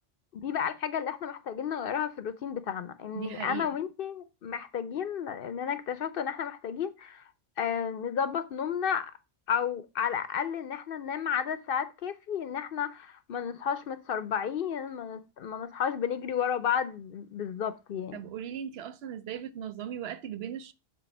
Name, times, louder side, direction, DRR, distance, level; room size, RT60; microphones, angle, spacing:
voice 1, 0.4-7.2 7.6-9.1 9.5-18.2, left 8 dB, 60° left, 0.7 m, -32 dB
voice 2, 3.1-3.7 18.1-20.7, right 9 dB, 70° right, 0.8 m, -38 dB
7.6 x 3.2 x 5.2 m
omnidirectional pair, 1.1 m